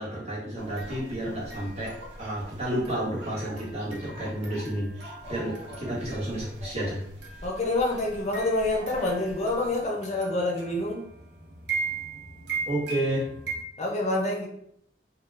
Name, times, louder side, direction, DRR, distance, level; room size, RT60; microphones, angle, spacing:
voice 1, 0.0-7.1 12.6-13.3, right 1 dB, 40° right, -7 dB, 1.1 m, -31 dB
sound 1, 0.6-13.6, right 3 dB, 80° right, 0.7 m, -39 dB
voice 2, 7.4-11.0 13.8-14.5, left 2 dB, 40° left, -1 dB, 0.6 m, -27 dB
2.2 x 2.2 x 3.2 m, 0.68 s
head